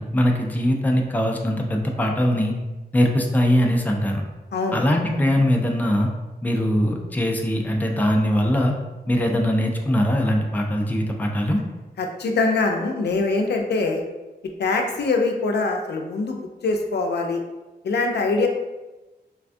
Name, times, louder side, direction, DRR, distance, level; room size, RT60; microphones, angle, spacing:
voice 1, 0.0-2.5 2.9-4.2 4.7-6.1 6.4-8.7 9.1-11.6, equal, 10° left, 2 dB, 0.3 m, -21 dB
voice 2, 4.5-4.8 12.0-14.0 14.6-17.4 17.8-18.5, left 3 dB, 85° left, 3 dB, 0.4 m, -23 dB
3.4 x 2.2 x 2.5 m, 1.1 s
wide cardioid pair, 115°, 17 cm